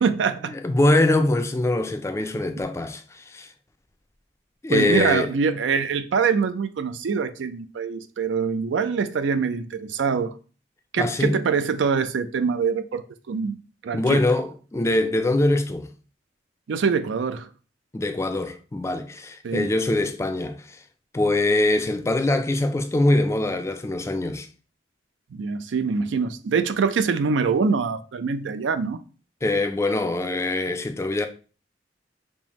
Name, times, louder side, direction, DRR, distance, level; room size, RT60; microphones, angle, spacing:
voice 1, 0.0-0.6 4.7-10.3 10.9-13.0 13.3-14.2 16.7-17.5 19.4-19.7 25.3-29.0, right 5 dB, 85° right, 0.4 m, -24 dB
voice 2, 0.5-3.5 4.6-5.3 11.0-11.4 13.9-15.9 17.9-20.8 21.1-24.5 29.4-31.3, left 2 dB, 15° left, 0.3 m, -23 dB
5.3 x 2.1 x 2.9 m
head